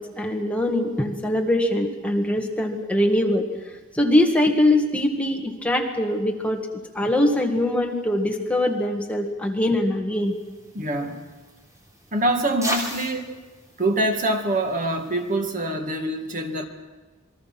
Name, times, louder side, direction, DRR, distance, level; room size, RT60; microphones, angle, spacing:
voice 1, 0.0-3.5 3.9-6.6 7.0-10.3, left 1 dB, 5° left, 1 dB, 1.8 m, -22 dB
sound 1, 10.3-15.4, right 1 dB, 15° right, 3.4 m, -37 dB
voice 2, 10.7-11.2 12.1-13.4 13.8-16.7, right 1 dB, 40° right, 4 dB, 1.9 m, -25 dB
27.5 x 21.5 x 6.0 m, 1.2 s
head